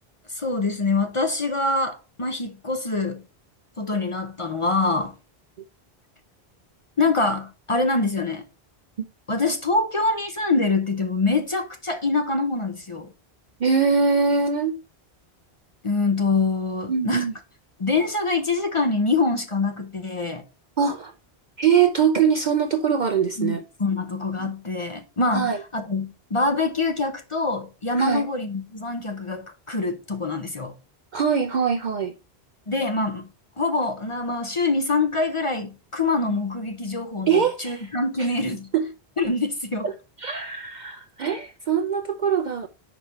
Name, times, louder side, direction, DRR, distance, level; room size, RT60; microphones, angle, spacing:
voice 1, 0.3-3.2 3.8-5.1 7.0-8.4 9.3-13.1 15.8-17.3 17.8-20.4 23.4-30.7 32.7-33.3 33.6-38.7 39.2-39.9, left 3 dB, 35° left, 0.6 m, -25 dB
voice 2, 13.6-14.8 16.9-17.3 20.8-21.1 21.6-23.6 24.4-24.5 25.3-25.6 27.9-28.2 31.1-32.1 36.2-36.4 37.3-37.9 38.2-38.3 38.7-38.9 39.8-39.9 40.2-42.7, right 6 dB, 55° right, 0.6 m, -22 dB
5.1 x 4.9 x 4.4 m
omnidirectional pair, 1.1 m